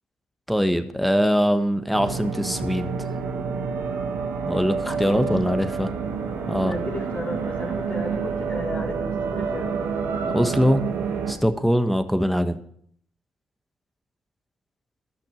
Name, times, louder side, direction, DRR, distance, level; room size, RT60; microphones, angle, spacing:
voice 1, 0.5-2.9 4.5-5.9 6.5-6.7 10.1-10.8 11.3-12.6, equal, ahead, 9 dB, 1.3 m, -22 dB
sound 1, 1.9-11.3, right 5 dB, 80° right, 1.5 m, -28 dB
voice 2, 4.9-5.6 6.6-9.8, left 1 dB, 45° left, -1 dB, 2.7 m, -34 dB
13.5 x 6.0 x 6.3 m, 0.66 s
hypercardioid pair, 45°, 4 cm